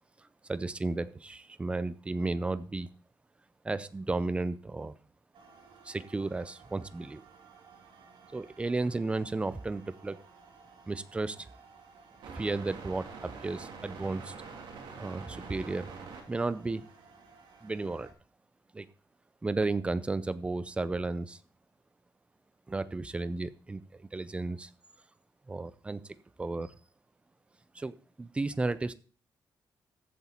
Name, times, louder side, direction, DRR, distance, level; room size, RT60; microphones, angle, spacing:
voice 1, 0.5-2.9 3.6-4.9 5.8-7.2 8.3-10.2 10.9-11.5 12.3-14.3 15.0-15.9 16.3-16.9 17.6-18.1 18.7-18.9 19.4-21.4 22.7-24.7 25.5-26.0 26.4-26.7 27.7-28.9, right 3 dB, 15° right, 15 dB, 0.6 m, -33 dB
sound 1, 5.3-18.1, right 5 dB, 80° right, 3.1 m, -49 dB
14.5 x 7.9 x 4.4 m, 0.39 s
wide cardioid pair, 170°, 8 cm